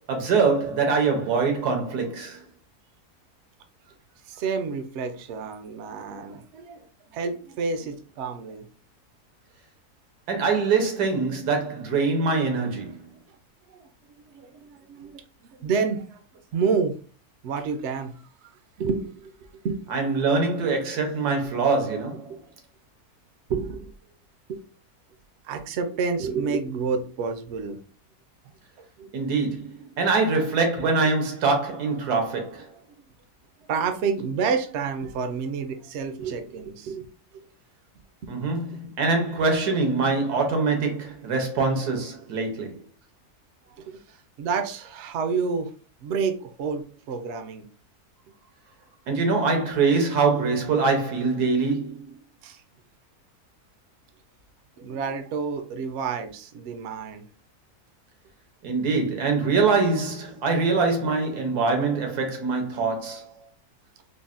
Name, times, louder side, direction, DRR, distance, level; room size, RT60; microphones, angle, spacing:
voice 1, 0.1-2.4 10.3-13.0 19.9-22.3 29.1-32.7 38.3-42.8 49.1-52.1 58.6-63.3, right 4 dB, 90° right, 1.4 m, -24 dB
voice 2, 4.3-8.7 13.8-13.9 14.3-15.2 15.6-16.2 16.5-17.0 17.4-18.2 18.8-19.3 19.6-20.1 22.3-22.4 23.5-23.9 24.5-24.6 25.4-27.8 29.0-29.1 33.7-37.1 43.7-45.7 46.0-47.7 52.4-52.6 54.8-57.3, right 5 dB, 70° right, 0.6 m, -29 dB
3.8 x 2.0 x 2.4 m
omnidirectional pair, 1.6 m